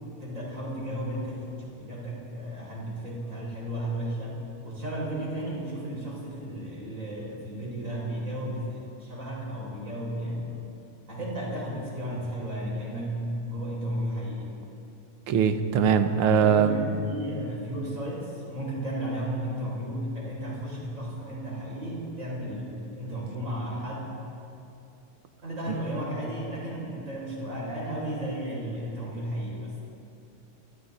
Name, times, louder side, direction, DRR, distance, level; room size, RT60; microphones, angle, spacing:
voice 1, 0.2-10.6 11.1-14.5 16.4-24.2 25.4-29.8, right 1 dB, 25° right, -4 dB, 7.3 m, -34 dB
voice 2, 15.3-16.8, right 7 dB, 55° right, 8 dB, 1.6 m, -21 dB
30.0 x 24.0 x 4.3 m, 2.7 s
omnidirectional pair, 3.4 m